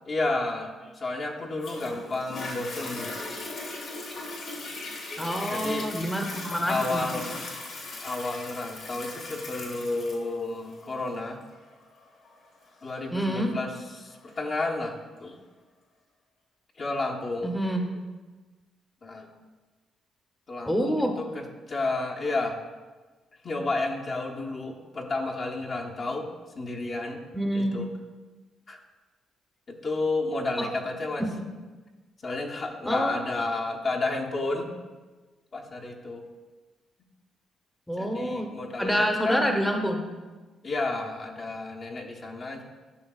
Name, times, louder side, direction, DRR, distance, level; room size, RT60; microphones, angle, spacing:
voice 1, 0.1-3.1 5.1-5.9 6.6-7.4 8.0-11.4 12.8-14.9 15.2-15.4 16.8-17.8 19.0-19.3 20.5-22.6 23.4-26.3 26.5-27.2 27.5-27.9 28.7-28.8 29.7-31.2 32.2-34.7 35.5-36.2 38.0-39.4 40.6-42.6, left 2 dB, 45° left, -1 dB, 1.0 m, -31 dB
Toilet flush, 1.6-14.6 15.2-15.3, left 2 dB, 70° left, 2.0 m, -39 dB
voice 2, 5.2-7.1 13.1-13.6 17.4-17.8 20.7-21.1 27.3-27.8 30.6-30.7 32.9-33.1 37.9-38.5 38.8-40.0, equal, 5° left, 3 dB, 0.9 m, -27 dB
11.0 x 5.8 x 2.4 m, 1.3 s
cardioid pair, 90°, 0 cm